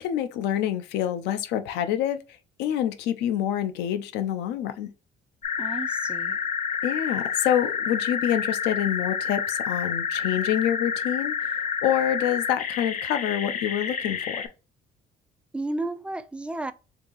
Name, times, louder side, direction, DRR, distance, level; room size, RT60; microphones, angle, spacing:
voice 1, 0.0-2.2 2.6-4.9 6.8-14.4, left 10 dB, 85° left, 0.6 m, -27 dB
sound 1, 5.4-14.5, left 7 dB, 50° left, 0.7 m, -29 dB
voice 2, 5.6-6.4 15.5-16.7, right 2 dB, 5° right, 0.4 m, -32 dB
3.5 x 2.8 x 3.9 m
cardioid pair, 110°, 17 cm